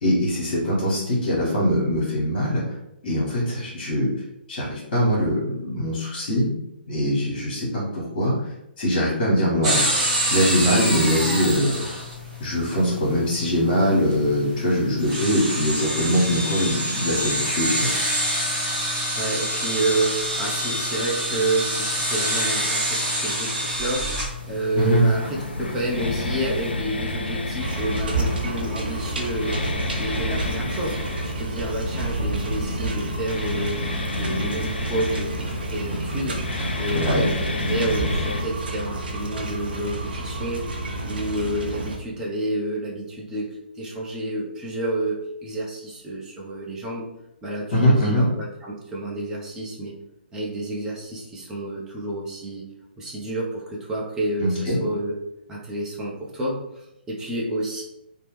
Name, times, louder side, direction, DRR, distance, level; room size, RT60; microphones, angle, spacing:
voice 1, 0.0-2.6 3.0-4.1 4.5-6.5 6.9-8.3 8.8-9.8 10.3-11.8 12.4-17.9 24.7-25.0 36.9-37.3 47.7-48.2 54.4-54.8, equal, 40° left, -7 dB, 1.3 m, -22 dB
sound 1, 9.6-26.7, equal, 30° right, 1.1 m, -27 dB
voice 2, 19.1-29.7 30.0-33.8 34.2-40.6 41.0-47.0 47.4-49.9 50.3-52.7 53.0-55.2 55.5-57.8, right 1 dB, 10° right, -4 dB, 0.6 m, -29 dB
sound 2, 24.8-38.5, left 2 dB, 70° left, 0.4 m, -30 dB
sound 3, 27.6-42.0, right 2 dB, 60° right, 0.6 m, -30 dB
2.9 x 2.0 x 3.1 m, 0.84 s
figure-of-eight pair, 130°, 6 cm